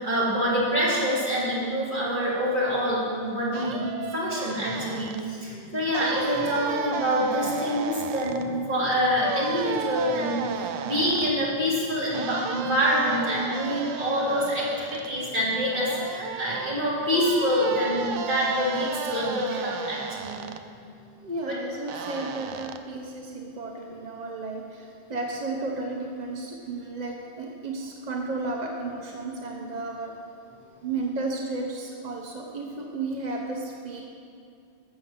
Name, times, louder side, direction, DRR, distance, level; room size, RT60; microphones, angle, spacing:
voice 1, 0.0-3.8 4.1-20.4 21.4-21.5, equal, 20° right, -7 dB, 3.5 m, -26 dB
sound 1, 3.5-5.2 5.9-8.5 9.2-11.3 12.1-15.1 15.7-20.6 21.9-22.8, right 7 dB, 85° right, 1.6 m, -34 dB
voice 2, 21.2-30.1 30.8-34.0, right 3 dB, 40° right, 0 dB, 0.6 m, -33 dB
12.5 x 7.8 x 7.4 m, 2.4 s
omnidirectional pair, 2.4 m